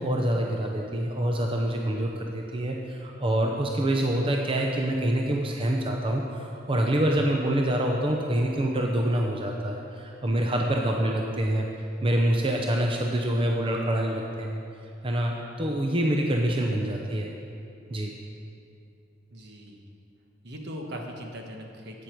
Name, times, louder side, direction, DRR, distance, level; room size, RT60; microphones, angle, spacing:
voice 1, 0.0-11.7 12.0-14.6 15.0-17.3 17.9-18.1, right 1 dB, 30° right, 1 dB, 0.7 m, -26 dB
voice 2, 19.3-19.8 20.4-22.0, equal, 65° right, 2 dB, 1.2 m, -39 dB
11.5 x 8.6 x 4.6 m, 2.6 s
head